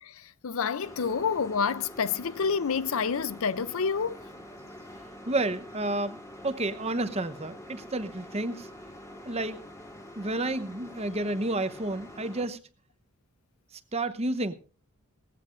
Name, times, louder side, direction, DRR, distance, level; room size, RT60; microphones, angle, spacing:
voice 1, 0.0-4.2, left 6 dB, 65° left, 0.5 m, -28 dB
sound 1, 0.8-12.5, left 1 dB, 15° left, 1.8 m, -46 dB
voice 2, 5.3-6.2 6.4-8.7 9.2-9.6 10.2-12.6 13.9-14.5, right 2 dB, 30° right, 0.9 m, -30 dB
19.5 x 15.5 x 2.5 m
head